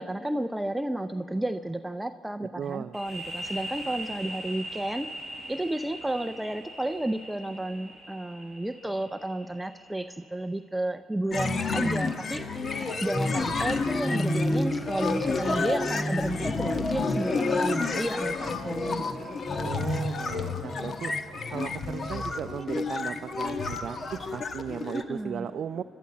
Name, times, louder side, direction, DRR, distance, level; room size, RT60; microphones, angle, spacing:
voice 1, 0.0-5.1 5.5-12.4 13.0-19.4 24.9-25.5, right 1 dB, 10° right, 9 dB, 0.5 m, -32 dB
voice 2, 2.6-3.0 19.5-21.1 21.5-25.8, right 8 dB, 60° right, 8 dB, 0.4 m, -36 dB
sound 1, 2.9-10.4, equal, 20° left, 6.7 m, -41 dB
sound 2, 11.3-25.0, left 3 dB, 45° left, 1.2 m, -29 dB
30.0 x 12.5 x 8.4 m, 3.0 s
cardioid pair, 90°, 0 cm